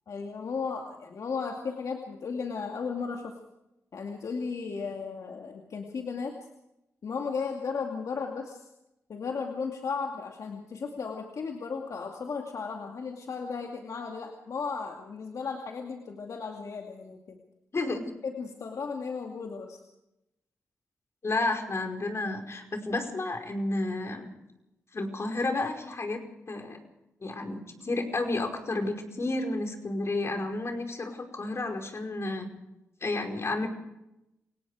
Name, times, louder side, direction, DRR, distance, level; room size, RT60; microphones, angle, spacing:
voice 1, 0.1-3.3 3.9-6.3 7.0-8.6 9.1-17.4 18.2-19.8, left 5 dB, 70° left, 2 dB, 2.4 m, -35 dB
voice 2, 17.7-18.1 21.2-24.3 24.9-26.8 27.2-32.5 33.0-33.7, left 2 dB, 50° left, 3 dB, 5.2 m, -31 dB
28.5 x 18.5 x 5.0 m, 0.89 s
cardioid pair, 50°, 6 cm